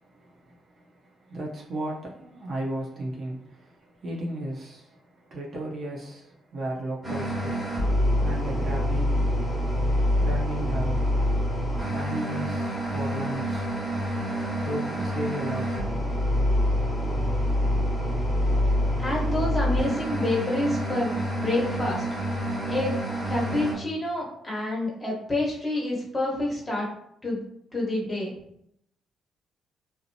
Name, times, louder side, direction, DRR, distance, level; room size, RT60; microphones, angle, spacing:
voice 1, 0.0-9.2 10.2-11.1 11.9-13.7 14.6-16.0, right 1 dB, 50° right, -2 dB, 0.6 m, -35 dB
sound 1, 7.0-23.7, equal, ahead, 1.0 m, -26 dB
voice 2, 19.0-22.0 22.7-22.9 23.3-26.9 27.2-27.4 27.7-28.3, left 2 dB, 20° left, -4 dB, 1.0 m, -28 dB
2.6 x 2.0 x 2.7 m, 0.74 s
cardioid pair, 90°, 0 cm